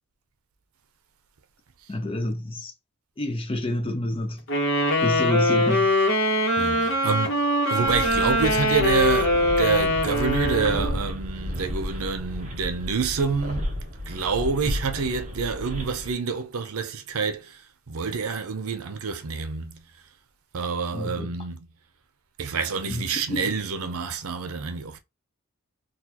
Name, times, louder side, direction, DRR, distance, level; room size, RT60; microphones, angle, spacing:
voice 1, 1.9-2.7 3.2-4.4 5.0-5.9 20.9-21.3 22.9-23.5, left 1 dB, 25° left, 0.5 m, -28 dB
sound 1, 4.5-11.0, left 1 dB, 60° left, 1.0 m, -23 dB
voice 2, 6.6-7.4 7.7-13.7 14.1-17.6 17.9-19.8 20.5-21.7 22.4-25.0, right 5 dB, 85° right, 0.6 m, -27 dB
sound 2, 7.8-16.1, left 1 dB, 35° right, 1.0 m, -32 dB
4.0 x 2.4 x 2.9 m
head